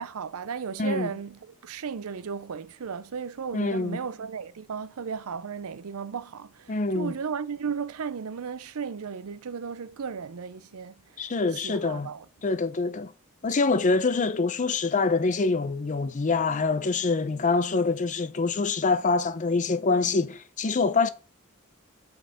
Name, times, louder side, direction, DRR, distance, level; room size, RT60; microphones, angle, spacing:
voice 1, 0.0-11.0 11.5-12.3, right 6 dB, 75° right, 0.5 m, -35 dB
voice 2, 3.5-4.0 6.7-7.1 11.2-12.1 12.4-13.1 13.4-21.1, left 3 dB, 35° left, 0.5 m, -25 dB
5.6 x 4.6 x 6.3 m
head